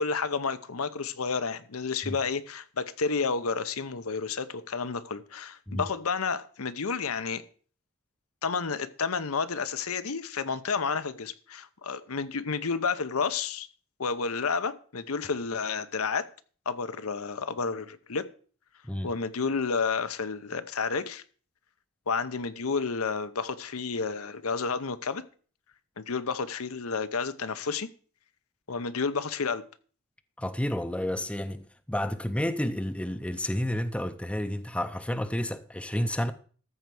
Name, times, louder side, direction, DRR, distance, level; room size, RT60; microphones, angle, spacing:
voice 1, 0.0-7.4 8.4-13.7 14.0-16.3 16.7-18.3 19.0-21.2 22.1-25.2 26.0-27.9 28.7-29.6, left 5 dB, 80° left, 0.8 m, -30 dB
voice 2, 30.4-36.3, left 1 dB, 5° left, 0.6 m, -30 dB
14.0 x 4.6 x 7.7 m
head